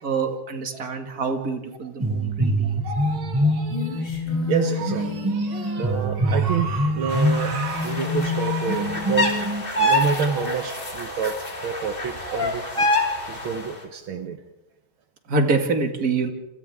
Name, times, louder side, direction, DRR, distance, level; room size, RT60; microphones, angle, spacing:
voice 1, 0.0-2.8 15.3-16.3, right 3 dB, 45° right, 4 dB, 2.4 m, -25 dB
sound 1, 2.0-9.6, equal, 10° right, 2.3 m, -25 dB
voice 2, 2.6-4.1 4.5-9.5 9.8-12.9 13.3-14.4, right 6 dB, 75° right, 6 dB, 1.9 m, -28 dB
Female singing, 3.7-7.2, left 2 dB, 55° left, 4.5 m, -39 dB
sound 2, 7.1-13.7, left 1 dB, 25° left, 3.1 m, -27 dB
28.5 x 27.0 x 3.6 m, 1.0 s
omnidirectional pair, 2.3 m